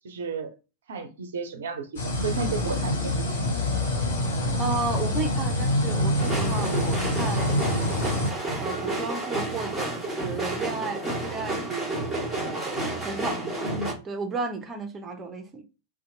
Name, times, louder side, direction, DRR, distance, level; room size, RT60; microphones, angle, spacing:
voice 1, 0.0-0.5 0.9-3.5 13.6-14.0, right 4 dB, 65° right, 0.5 m, -33 dB
sound 1, 2.0-8.3, left 1 dB, 65° left, 0.7 m, -26 dB
voice 2, 4.6-8.0 8.6-12.0 12.4-13.7 14.0-15.6, right 4 dB, 20° right, 0.6 m, -33 dB
sound 2, 6.2-13.9, right 2 dB, 5° right, 1.1 m, -31 dB
2.5 x 2.2 x 2.6 m
figure-of-eight pair, 90°, 0 cm